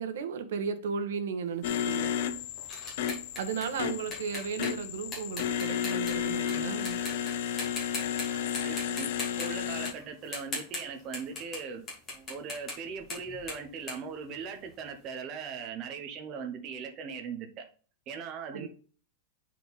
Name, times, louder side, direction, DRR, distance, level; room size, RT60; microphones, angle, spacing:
voice 1, 0.0-2.1 3.4-7.0 18.5-18.7, right 6 dB, 80° right, 1.2 m, -35 dB
sound 1, 1.6-9.9, left 9 dB, 55° left, 0.6 m, -32 dB
sound 2, 1.6-6.5 6.9-7.3 7.6-8.2 8.5-11.6 11.9-14.9, left 2 dB, 15° left, 2.6 m, -40 dB
voice 2, 8.2-9.1 9.4-11.8 12.1-17.7 18.1-18.7, right 6 dB, 25° right, 0.9 m, -40 dB
8.9 x 4.5 x 4.1 m
supercardioid pair, 170°, 0 cm